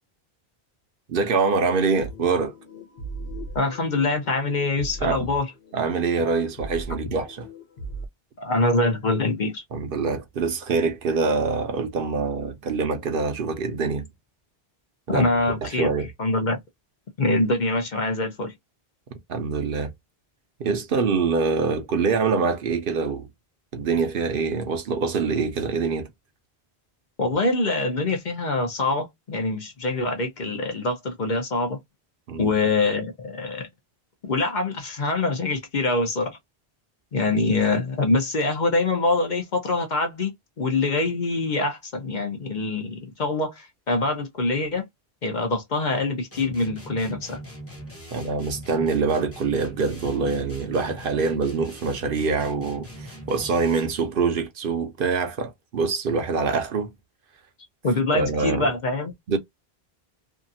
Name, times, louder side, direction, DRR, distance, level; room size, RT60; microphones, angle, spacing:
voice 1, 1.1-2.5 5.0-5.3 5.7-7.5 9.7-14.1 15.1-15.3 15.6-16.1 19.3-19.9 20.6-23.3 23.7-26.1 32.3-32.5 48.1-56.9 58.1-58.7 59.3-59.4, right 4 dB, 65° right, 0.8 m, -25 dB
sound 1, 2.0-8.1, right 1 dB, 65° left, 1.1 m, -38 dB
voice 2, 3.5-5.5 8.4-9.6 15.1-15.9 16.2-16.6 17.2-18.5 27.2-31.8 32.4-33.7 34.2-36.4 37.1-44.8 45.2-47.4 53.4-53.5 57.8-59.1, left 2 dB, 50° left, 0.8 m, -24 dB
sound 2, 46.3-54.1, equal, 15° left, 0.8 m, -41 dB
2.8 x 2.4 x 2.6 m
omnidirectional pair, 1.0 m